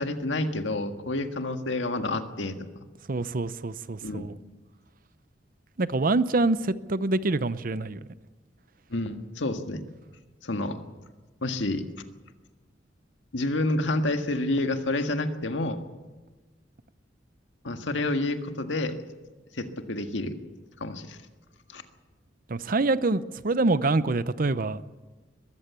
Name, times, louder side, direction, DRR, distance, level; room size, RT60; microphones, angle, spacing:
voice 1, 0.0-2.7 4.0-4.2 8.9-9.8 10.4-10.8 11.4-11.8 13.3-15.8 17.6-19.0 19.6-20.4 20.8-21.2 21.7-21.8, left 2 dB, 85° left, 6 dB, 1.7 m, -29 dB
voice 2, 3.1-4.3 5.8-8.0 22.5-24.8, right 3 dB, 50° right, 15 dB, 0.7 m, -25 dB
22.0 x 14.5 x 8.2 m, 1.3 s
head